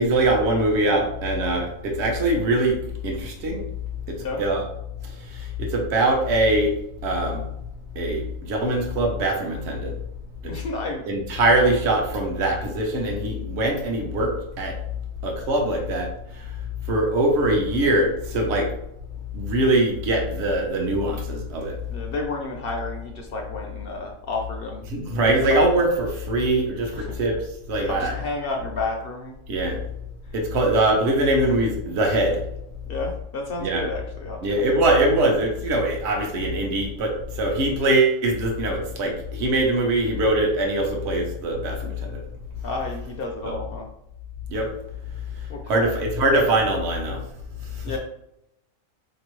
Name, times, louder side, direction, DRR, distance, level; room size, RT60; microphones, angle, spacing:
voice 1, 0.0-2.8 3.0-3.6 4.1-4.6 5.6-6.7 7.0-7.4 8.0-9.9 10.4-10.5 11.1-14.3 14.6-14.7 15.2-16.1 16.9-18.7 19.3-21.7 24.9-26.9 27.2-27.4 27.7-28.2 29.5-29.8 30.3-32.4 33.6-33.8 34.4-37.1 37.4-42.2 43.4-43.6 44.5-44.7 45.7-47.2, right 1 dB, 60° right, 0 dB, 1.0 m, -22 dB
voice 2, 10.5-11.0 21.9-24.9 25.4-25.6 26.9-27.1 27.8-29.4 32.9-34.4 34.7-34.9 42.6-43.9 45.5-46.0 47.8-48.0, left 2 dB, 60° left, 1 dB, 0.6 m, -31 dB
4.4 x 2.9 x 3.0 m, 0.82 s
omnidirectional pair, 1.4 m